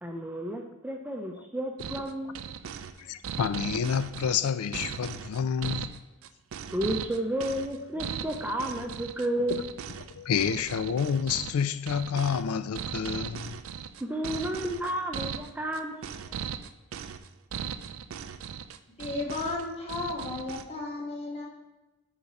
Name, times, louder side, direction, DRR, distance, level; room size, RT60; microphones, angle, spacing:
voice 1, 0.0-2.8 6.7-9.6 14.0-16.4, right 1 dB, 5° right, 0.5 m, -32 dB
sound 1, 1.8-20.7, right 7 dB, 65° right, 0.4 m, -38 dB
voice 2, 3.0-5.9 9.5-9.6 10.1-13.6, left 7 dB, 80° left, 0.4 m, -29 dB
voice 3, 19.0-21.5, left 3 dB, 25° left, 1.4 m, -34 dB
7.1 x 4.9 x 4.2 m
head